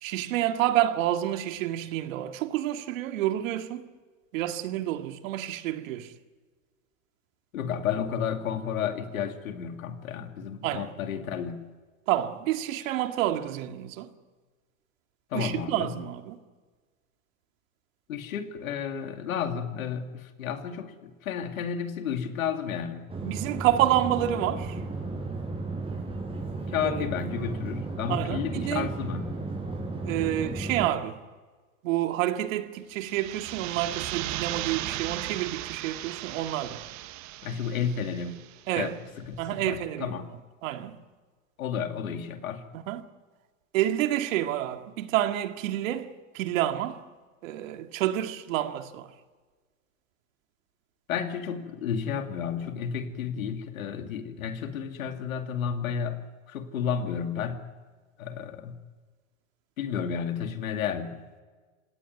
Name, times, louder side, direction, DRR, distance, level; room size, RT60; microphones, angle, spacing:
voice 1, 0.0-3.9 4.3-6.1 10.6-10.9 12.1-14.1 15.3-16.4 23.2-24.8 26.8-27.1 28.1-28.9 30.0-31.2 31.8-36.8 38.7-38.9 39.4-40.1 40.6-41.0 42.7-43.0 43.7-47.0 47.4-49.1, right 13 dB, 70° right, 2.1 m, -28 dB
voice 2, 7.5-11.7 15.3-16.1 18.1-23.1 26.7-29.4 37.4-38.4 38.8-40.3 41.6-42.6 51.1-57.6 58.2-58.8 59.8-61.2, left 7 dB, 90° left, 2.6 m, -32 dB
sound 1, 23.1-30.9, right 3 dB, 15° right, 7.0 m, -34 dB
sound 2, 33.0-38.6, right 15 dB, 45° right, 1.2 m, -36 dB
26.5 x 17.5 x 9.5 m
hypercardioid pair, 115°, 40 cm